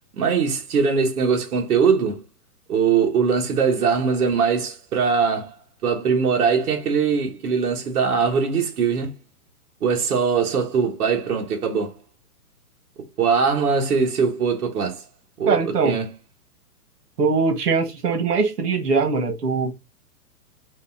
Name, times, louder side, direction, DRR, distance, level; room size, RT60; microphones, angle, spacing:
voice 1, 0.1-2.2 2.7-5.5 5.8-9.1 9.8-11.9 13.2-15.0 15.4-16.1, right 5 dB, 70° right, 1.5 m, -21 dB
voice 2, 15.5-16.0 17.2-19.7, right 4 dB, 85° right, 1.6 m, -21 dB
5.3 x 2.4 x 3.8 m
hypercardioid pair, 180°, 46 cm